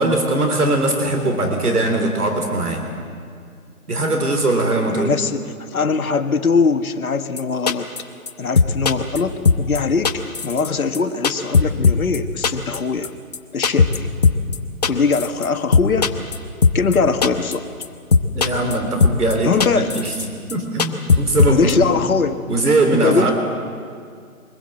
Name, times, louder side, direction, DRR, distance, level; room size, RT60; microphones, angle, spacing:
voice 1, 0.0-2.8 3.9-5.1 18.3-20.1 20.5-21.7 22.5-23.3, right 2 dB, 80° right, 4 dB, 3.7 m, -20 dB
voice 2, 4.9-7.9 8.4-10.1 10.4-13.1 13.5-14.1 14.9-16.1 16.7-17.6 19.4-19.9 21.5-22.4 22.9-23.3, left 5 dB, 70° left, 8 dB, 1.6 m, -21 dB
sound 1, 7.4-7.5 7.7-8.0 8.3-8.4 8.5-9.2 9.4-9.8 10.0-10.7 10.9-11.0 11.2-12.2 12.4-12.8 13.0-13.1 13.3-13.4 13.6-14.0 14.2-14.6 14.8-15.5 15.7-16.4 16.6-17.0 17.2-17.5 17.8-17.9 18.1-18.7 19.0-19.3 19.6-20.2 20.5-20.6 20.8-21.7, left 5 dB, 25° left, 0.9 m, -16 dB
24.0 x 20.5 x 7.7 m, 2.2 s
hypercardioid pair, 160°, 44 cm